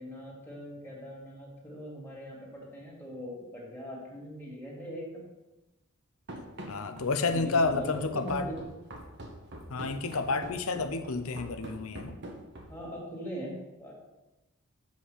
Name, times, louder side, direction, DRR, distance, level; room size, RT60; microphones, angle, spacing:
voice 1, 0.0-5.3 7.3-8.6 12.7-14.0, equal, 10° left, -4 dB, 2.6 m, -41 dB
Run, 6.3-12.9, right 1 dB, 55° right, 1.3 m, -44 dB
voice 2, 6.7-8.5 9.7-12.1, left 3 dB, 90° left, 9 dB, 0.8 m, -30 dB
7.9 x 5.7 x 6.3 m, 1.0 s
head